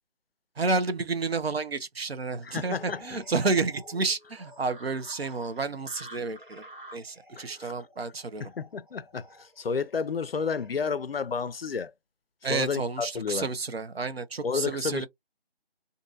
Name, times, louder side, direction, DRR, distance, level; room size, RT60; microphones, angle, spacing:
voice 1, 0.6-6.6 6.9-8.4 12.4-15.1, right 4 dB, 75° right, 0.7 m, -30 dB
voice 2, 2.4-3.2 7.4-7.8 8.4-11.9 12.5-13.5 14.4-15.1, left 5 dB, 70° left, 0.5 m, -31 dB
sound 1, 2.6-10.8, equal, 50° right, 1.4 m, -50 dB
2.7 x 2.5 x 2.4 m
figure-of-eight pair, 165°, 31 cm